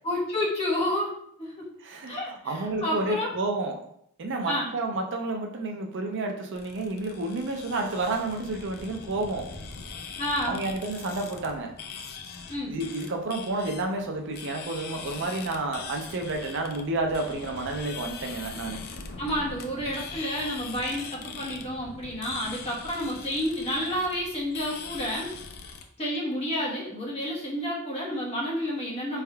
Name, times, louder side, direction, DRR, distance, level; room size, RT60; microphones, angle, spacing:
voice 1, 0.0-1.1 1.4-1.6 2.1-3.3 4.4-4.7 10.2-10.6 12.5-12.8 19.2-25.3 26.0-29.2, equal, 30° left, -5 dB, 1.2 m, -30 dB
voice 2, 1.8-3.8 4.2-9.5 10.5-11.7 12.7-18.8, right 2 dB, 55° right, 3 dB, 0.5 m, -30 dB
sound 1, 6.5-25.8, left 5 dB, 45° left, 0.4 m, -42 dB
4.2 x 3.4 x 2.3 m, 0.70 s
head